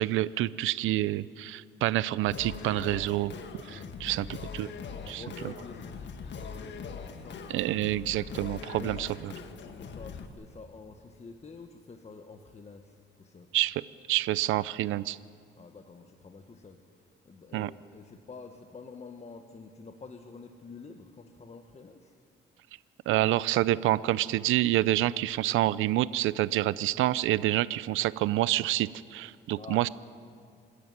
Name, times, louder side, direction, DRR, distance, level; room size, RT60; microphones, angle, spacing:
voice 1, 0.0-3.3 3.7-4.7 5.1-5.2 7.5-9.3 13.5-13.8 14.1-15.2 17.5-17.7 23.1-29.9, right 15 dB, 85° right, 18 dB, 0.5 m, -27 dB
Singing, 2.3-10.3, left 5 dB, 65° left, 1.8 m, -41 dB
voice 2, 4.1-4.7 5.0-7.4 8.7-13.5 15.6-16.8 17.2-22.1 29.6-29.9, left 4 dB, 35° left, 5 dB, 1.4 m, -48 dB
26.0 x 13.0 x 9.5 m, 2.2 s
cardioid pair, 90°, 20 cm